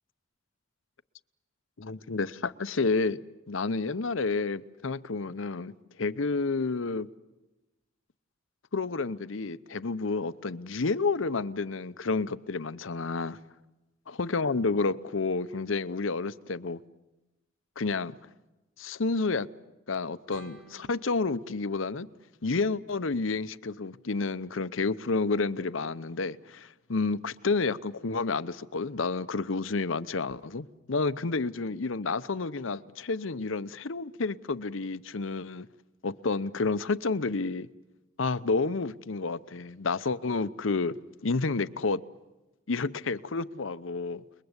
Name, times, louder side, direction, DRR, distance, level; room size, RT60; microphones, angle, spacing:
voice 1, 1.8-3.2 3.5-5.7 6.0-7.1 8.7-13.4 14.1-16.8 17.8-18.2 18.8-19.5 19.9-22.1 22.4-35.7 36.0-37.7 38.2-40.9 41.2-42.0 42.7-44.2, left 3 dB, 75° left, 0.8 m, -30 dB
sound 1, 20.3-23.3, right 2 dB, 75° right, 4.5 m, -55 dB
29.5 x 21.5 x 8.1 m
head